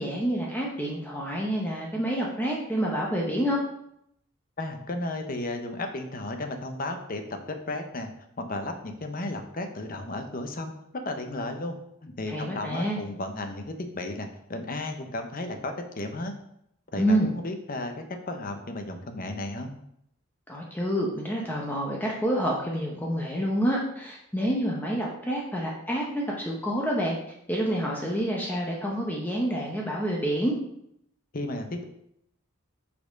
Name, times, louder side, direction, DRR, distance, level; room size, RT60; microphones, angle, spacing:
voice 1, 0.0-3.6 12.3-13.0 17.0-17.3 20.5-27.2 27.5-30.5, equal, 10° left, -2 dB, 0.8 m, -28 dB
voice 2, 4.6-7.2 7.5-8.1 8.4-11.8 12.0-16.3 16.9-19.7 31.3-31.8, left 2 dB, 45° left, 6 dB, 0.8 m, -34 dB
5.6 x 4.3 x 5.1 m, 0.75 s
head